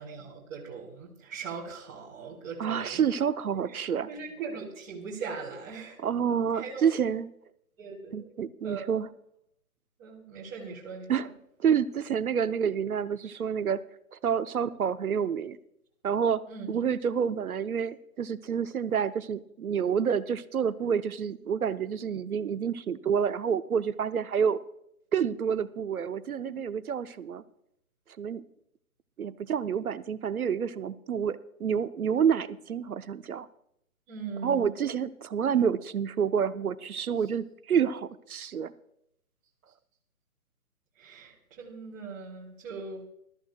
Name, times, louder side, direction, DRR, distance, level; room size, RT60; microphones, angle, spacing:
voice 1, 0.0-3.0 3.6-3.8 4.1-6.0 6.5-6.9 7.8-8.2 8.6-8.9 10.0-11.3 13.2-13.4 16.5-16.7 34.1-34.7 41.0-43.1, right 5 dB, 20° right, -7 dB, 2.7 m, -40 dB
voice 2, 2.6-4.1 6.0-7.3 8.1-9.1 11.1-11.3 11.6-13.8 14.1-15.6 16.0-16.4 16.7-24.6 25.1-27.4 28.2-28.4 29.2-33.5 34.4-38.7, right 7 dB, 80° right, 14 dB, 0.8 m, -28 dB
20.5 x 13.5 x 2.3 m, 0.76 s
figure-of-eight pair, 145°, 43 cm